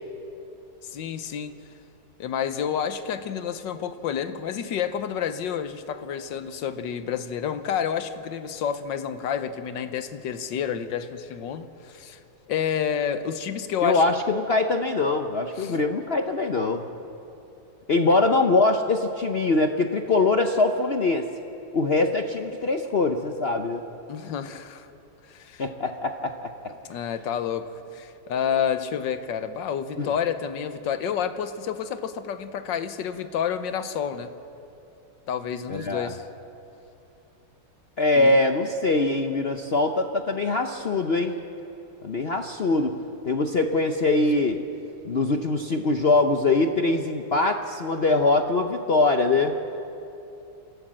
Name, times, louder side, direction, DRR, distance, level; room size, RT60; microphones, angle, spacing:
voice 1, 0.8-1.6 2.2-12.2 12.5-14.0 15.6-15.8 24.1-24.9 25.3-25.6 26.9-34.3 35.3-36.3 38.1-38.3, left 8 dB, 75° left, 10 dB, 1.5 m, -29 dB
voice 2, 13.8-16.8 17.9-21.3 21.7-23.9 25.6-26.5 30.0-30.1 35.7-36.1 38.0-41.4 42.0-42.9 43.3-44.6 45.0-49.6, left 3 dB, 55° left, 5 dB, 0.6 m, -23 dB
27.5 x 13.5 x 7.6 m, 2.9 s
omnidirectional pair, 2.1 m